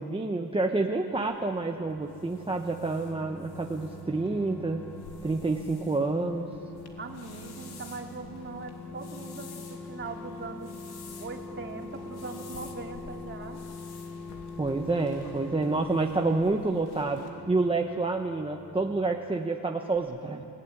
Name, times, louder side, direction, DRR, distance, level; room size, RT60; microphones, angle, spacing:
voice 1, 0.0-4.8 5.2-6.5 14.6-20.5, right 3 dB, 15° right, 2 dB, 1.0 m, -28 dB
sound 1, 1.1-17.3, left 5 dB, 65° left, 3.3 m, -52 dB
sound 2, 1.4-19.7 20.0-20.1, left 2 dB, 5° left, 2.2 m, -44 dB
voice 2, 7.0-10.7 11.2-13.6, right 3 dB, 30° right, 2 dB, 2.7 m, -40 dB
30.0 x 17.0 x 9.9 m, 2.7 s
cardioid pair, 145°, 42 cm